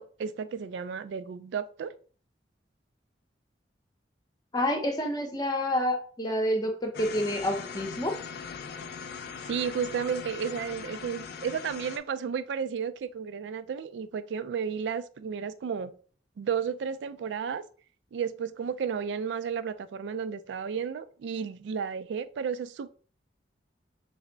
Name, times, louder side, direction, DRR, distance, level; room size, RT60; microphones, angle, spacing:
voice 1, 0.0-1.9 9.5-15.9 16.4-17.6 18.1-22.9, right 7 dB, 75° right, 13 dB, 0.3 m, -33 dB
voice 2, 4.5-8.1, left 1 dB, 20° left, 3 dB, 0.7 m, -28 dB
sound 1, 6.9-12.0, left 6 dB, 60° left, 0.4 m, -40 dB
3.3 x 2.0 x 3.8 m, 0.42 s
head